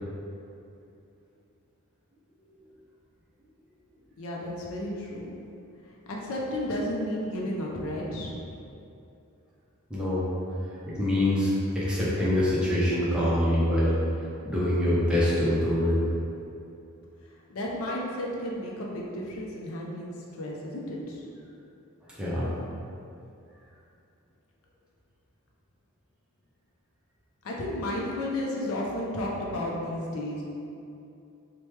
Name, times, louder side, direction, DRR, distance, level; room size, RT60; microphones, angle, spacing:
voice 1, 4.2-5.4 6.1-8.4 17.5-20.1 20.4-21.2 27.4-30.4, left 1 dB, 70° left, -3 dB, 0.4 m, -32 dB
voice 2, 9.9-10.3 10.9-14.0 14.4-15.9 22.1-22.5, left 1 dB, 5° right, -9 dB, 0.6 m, -24 dB
3.1 x 2.1 x 3.1 m, 2.7 s
head